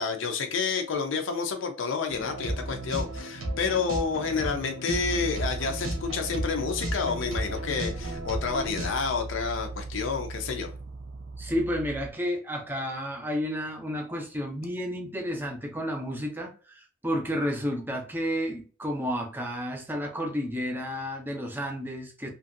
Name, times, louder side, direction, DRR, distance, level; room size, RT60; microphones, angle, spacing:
voice 1, 0.0-10.7, left 5 dB, 65° left, 0.5 m, -29 dB
sound 1, 2.1-8.9, right 1 dB, 85° right, 0.9 m, -34 dB
sound 2, 5.0-12.1, right 3 dB, 55° right, 0.5 m, -38 dB
voice 2, 11.4-22.3, equal, 10° right, 0.6 m, -31 dB
2.9 x 2.6 x 2.5 m
head